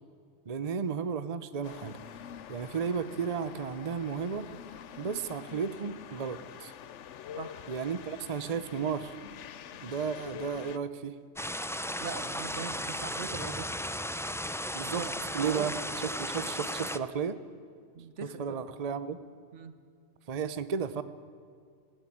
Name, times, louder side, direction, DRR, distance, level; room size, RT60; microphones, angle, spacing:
voice 1, 0.5-2.0 2.5-4.5 5.0-6.7 7.7-9.1 9.8-11.1 14.7-15.1 15.3-15.7 16.0-17.4 18.4-19.2 20.3-21.0, right 6 dB, 35° right, 13 dB, 0.8 m, -33 dB
sound 1, 1.6-10.8, left 9 dB, 80° left, 1.0 m, -46 dB
sound 2, 11.4-17.0, equal, 5° left, 0.4 m, -35 dB
voice 2, 12.0-13.7 15.0-15.9 17.9-18.7 19.5-19.7, right 6 dB, 80° right, 11 dB, 1.6 m, -41 dB
18.5 x 16.0 x 8.7 m, 2.3 s
omnidirectional pair, 1.2 m